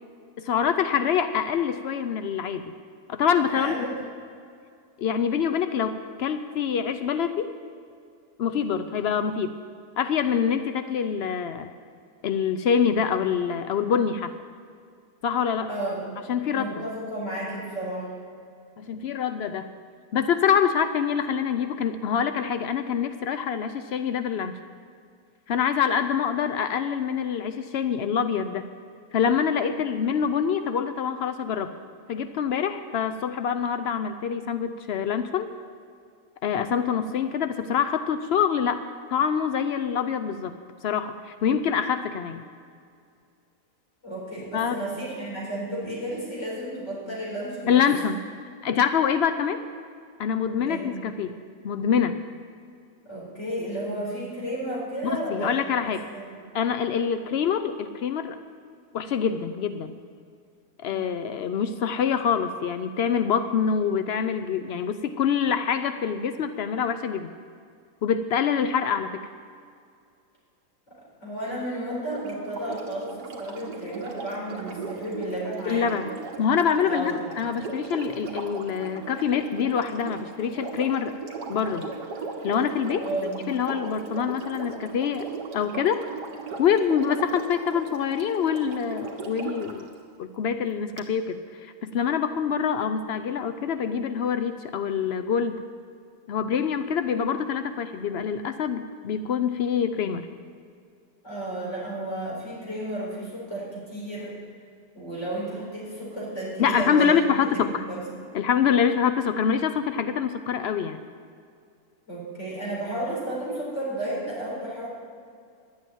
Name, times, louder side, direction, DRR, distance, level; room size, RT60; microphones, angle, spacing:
voice 1, 0.4-2.7 3.1-3.8 5.0-7.5 8.4-9.6 10.0-11.7 12.2-14.3 15.2-15.7 16.3-16.7 18.8-19.7 20.1-24.6 25.5-28.7 29.1-31.7 32.1-35.5 36.4-38.8 39.1-40.5 40.8-42.4 44.5-44.8 47.7-48.2 48.6-49.6 50.2-51.4 51.6-52.2 55.1-56.1 56.5-58.4 58.9-60.0 60.8-67.3 68.0-69.2 75.7-76.1 76.4-81.1 81.5-81.9 82.4-83.1 83.5-85.3 85.5-86.0 86.6-89.9 90.2-95.6 96.3-100.3 106.6-107.8 108.3-111.0, left 7 dB, 90° left, 9 dB, 0.5 m, -25 dB
voice 2, 3.5-3.9 15.7-16.1 16.5-18.1 44.0-47.8 50.6-50.9 53.0-56.4 60.9-61.2 70.9-76.0 76.8-77.3 83.0-83.5 101.2-104.4 104.9-108.0 112.1-114.9, right 1 dB, 45° left, -5 dB, 4.8 m, -33 dB
Sink (filling or washing), 72.0-89.8 91.0-91.1, right 4 dB, 85° right, 2.0 m, -38 dB
11.5 x 8.6 x 9.0 m, 2.3 s
omnidirectional pair, 1.7 m